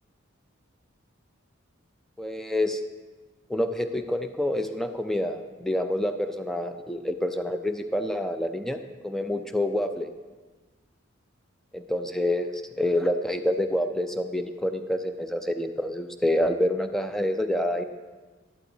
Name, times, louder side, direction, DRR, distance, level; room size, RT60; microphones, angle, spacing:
voice 1, 2.2-2.8 3.5-10.1 11.7-17.8, left 1 dB, ahead, 7 dB, 0.4 m, -27 dB
11.5 x 11.5 x 2.7 m, 1.4 s
head